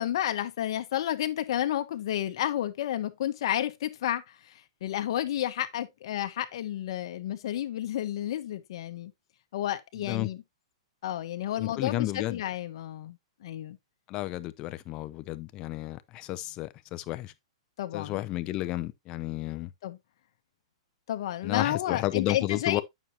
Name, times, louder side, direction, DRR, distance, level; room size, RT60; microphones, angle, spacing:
voice 1, 0.0-9.1 9.5-10.4 11.0-13.8 17.8-18.2 19.8-20.0 21.1-22.8, left 12 dB, 55° left, 1.0 m, -31 dB
voice 2, 11.6-12.4 14.1-17.3 17.9-19.7 21.4-22.8, left 16 dB, 25° left, 0.5 m, -32 dB
9.2 x 6.2 x 2.8 m
hypercardioid pair, 160°, 3 cm